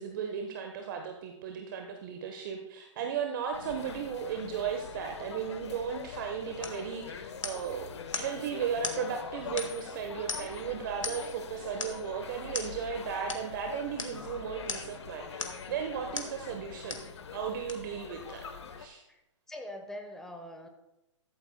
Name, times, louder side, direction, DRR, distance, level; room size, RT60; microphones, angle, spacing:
voice 1, 0.0-17.0 17.3-18.4 18.8-19.0, right 7 dB, 40° right, 4 dB, 1.1 m, -36 dB
sound 1, 3.5-18.9, left 6 dB, 60° left, 1.0 m, -43 dB
sound 2, 6.6-6.8 7.4-7.7 8.1-8.3 8.8-9.0 9.6-9.9 10.3-10.6 11.0-11.3 11.8-12.0 12.5-12.7 13.3-13.5 14.0-14.2 14.7-15.0 15.4-15.7 16.1-16.4 16.9-17.1 17.7-17.8, left 4 dB, 75° left, 1.7 m, -37 dB
voice 2, 19.5-20.7, left 1 dB, 5° left, 4 dB, 1.0 m, -43 dB
15.0 x 13.0 x 2.2 m, 0.91 s
figure-of-eight pair, 125°, 16 cm